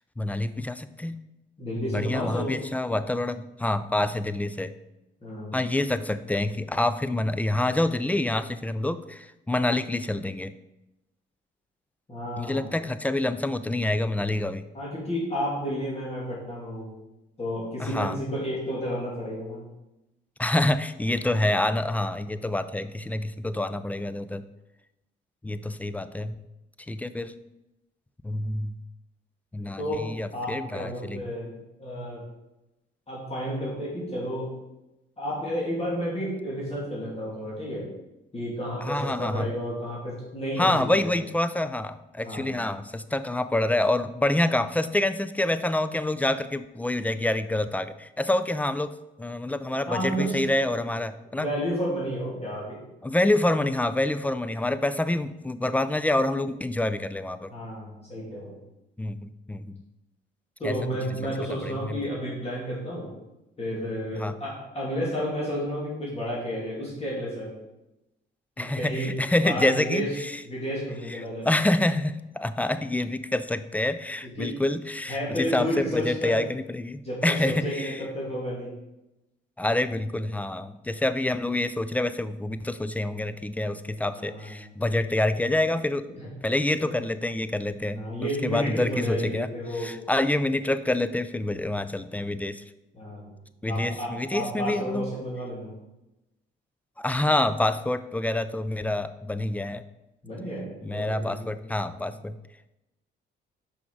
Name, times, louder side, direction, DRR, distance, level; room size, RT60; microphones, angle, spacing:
voice 1, 0.2-1.2 1.9-4.7 5.5-10.5 12.4-14.6 17.8-18.2 20.4-24.4 25.4-26.3 26.9-27.3 28.2-28.8 29.5-31.2 38.8-39.5 40.6-51.5 53.0-57.5 59.0-59.8 60.6-60.8 61.2-61.3 61.6-62.0 64.2-64.3 68.6-70.4 71.1-78.0 79.6-86.1 86.4-89.5 89.8-92.6 93.6-95.1 97.0-99.8 100.8-102.4, left 1 dB, 10° left, 13 dB, 0.3 m, -27 dB
voice 2, 1.6-2.6 5.2-5.6 12.1-12.7 14.7-16.9 17.4-19.6 29.8-32.2 33.1-34.6 35.2-37.9 38.3-41.2 42.2-42.6 49.9-50.5 51.3-52.8 57.5-58.6 60.6-63.1 63.6-67.5 68.6-70.1 70.4-71.5 74.2-74.5 75.1-76.4 77.0-78.7 84.1-84.5 86.1-86.3 86.8-86.9 87.9-89.9 92.9-93.3 93.7-95.7 100.2-101.4 102.0-102.1, equal, 30° left, -6 dB, 2.6 m, -31 dB
5.9 x 5.0 x 4.7 m, 0.95 s
cardioid pair, 90°, 20 cm